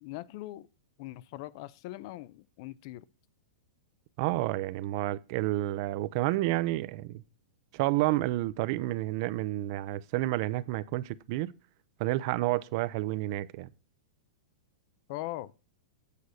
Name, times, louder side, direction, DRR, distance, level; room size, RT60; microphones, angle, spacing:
voice 1, 0.0-0.7 1.0-3.0 15.1-15.5, left 16 dB, 50° left, 0.5 m, -40 dB
voice 2, 4.2-7.2 7.7-11.5 12.0-13.7, right 17 dB, 50° right, 0.5 m, -30 dB
8.3 x 4.1 x 6.3 m
hypercardioid pair, 140°, 3 cm